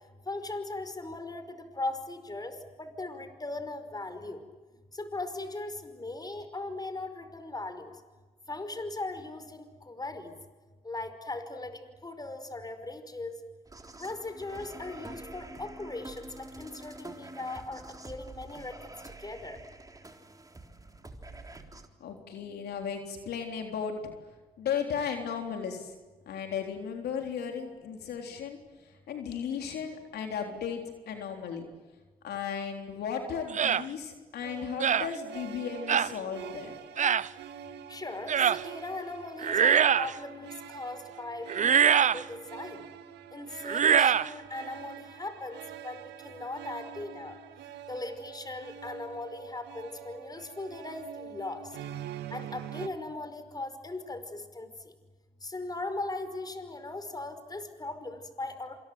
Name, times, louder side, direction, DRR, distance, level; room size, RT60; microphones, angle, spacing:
voice 1, 0.2-4.4 4.9-7.9 8.5-10.3 10.8-13.4 14.0-18.9 19.2-19.6 37.9-42.9 43.3-47.4 47.9-51.6 52.3-54.7 55.4-58.8, left 2 dB, 20° left, 10 dB, 5.2 m, -39 dB
sound 1, 13.7-21.9, right 2 dB, 20° right, 3.8 m, -47 dB
voice 2, 22.0-24.1 24.6-25.9 26.3-31.7 32.2-36.8, left 7 dB, 65° left, 3 dB, 3.7 m, -35 dB
sound 2, 33.5-33.8 34.8-35.1 35.9-36.1 37.0-37.3 38.3-38.6 39.4-40.2 41.5-42.2 43.6-44.3, right 8 dB, 45° right, 0.8 m, -23 dB
sound 3, 34.4-52.9, right 10 dB, 75° right, 1.9 m, -45 dB
28.0 x 27.0 x 7.9 m, 1.3 s
hypercardioid pair, 55°, 18 cm